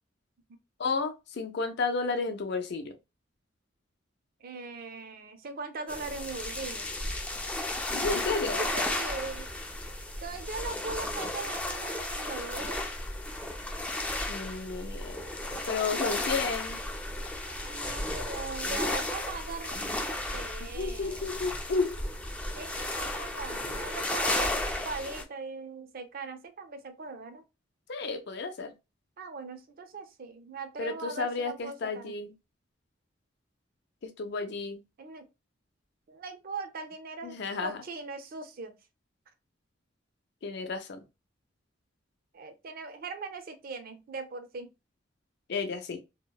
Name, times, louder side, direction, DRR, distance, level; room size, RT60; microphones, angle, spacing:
voice 1, 0.8-2.9 7.9-8.6 14.3-16.8 20.7-22.0 27.9-28.7 30.8-32.3 34.0-34.8 37.2-37.8 40.4-41.0 45.5-46.0, left 4 dB, 65° left, 0.5 m, -32 dB
voice 2, 4.4-6.9 8.5-9.5 10.2-12.9 17.5-21.2 22.5-27.4 29.2-32.1 35.0-35.3 36.1-38.7 42.3-44.7, right 3 dB, 50° right, 0.5 m, -40 dB
sound 1, 5.9-25.2, left 1 dB, 5° left, 0.3 m, -34 dB
2.8 x 2.0 x 2.2 m
head